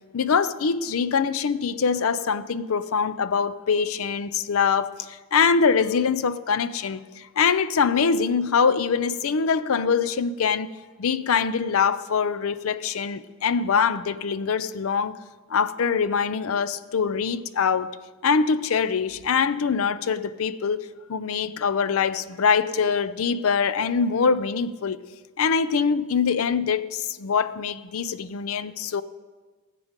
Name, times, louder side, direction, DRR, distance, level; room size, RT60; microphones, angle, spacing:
voice 1, 0.1-10.7 11.0-15.2 15.5-25.0 25.4-29.0, left 6 dB, 80° left, 0.5 m, -24 dB
16.5 x 7.6 x 5.2 m
head